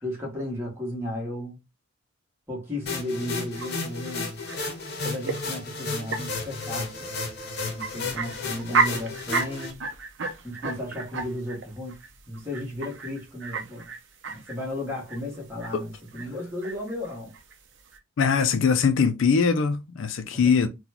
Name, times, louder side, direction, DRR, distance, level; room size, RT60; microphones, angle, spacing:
voice 1, 0.0-1.6 2.5-4.5 5.0-7.1 7.6-9.8 10.4-13.9 14.3-17.3 20.3-20.7, left 1 dB, 10° right, 1.2 m, -34 dB
sound 1, 2.9-9.7, left 3 dB, 50° left, 0.8 m, -33 dB
sound 2, 3.5-18.0, right 4 dB, 60° right, 0.6 m, -33 dB
voice 2, 18.2-20.7, left 5 dB, 65° left, 0.4 m, -22 dB
3.8 x 2.2 x 2.8 m
head